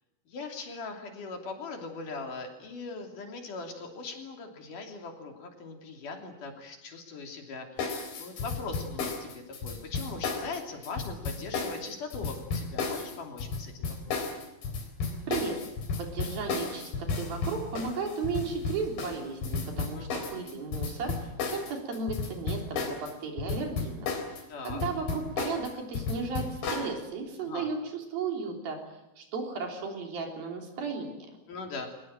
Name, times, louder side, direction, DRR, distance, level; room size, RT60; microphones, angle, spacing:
voice 1, 0.3-14.2 20.0-20.1 24.5-24.8 27.4-27.7 31.5-31.9, left 4 dB, 60° left, 3 dB, 4.4 m, -40 dB
sound 1, 7.8-23.1 23.4-26.9, left 4 dB, 80° left, 5.6 m, -33 dB
voice 2, 15.3-15.6 16.0-24.1 24.6-31.3, right 4 dB, 75° right, 2 dB, 5.4 m, -35 dB
23.0 x 20.0 x 8.9 m, 0.94 s
omnidirectional pair, 4.3 m